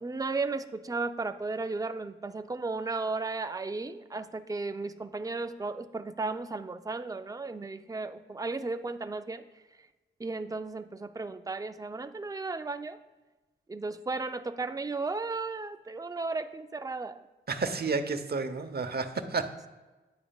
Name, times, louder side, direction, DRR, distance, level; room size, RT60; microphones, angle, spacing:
voice 1, 0.0-9.4 10.2-13.0 13.7-17.2, right 3 dB, 15° right, 9 dB, 0.5 m, -34 dB
voice 2, 17.5-19.5, right 4 dB, 50° right, 8 dB, 0.9 m, -31 dB
9.9 x 8.6 x 2.4 m, 1.2 s
cardioid pair, 50°, 21 cm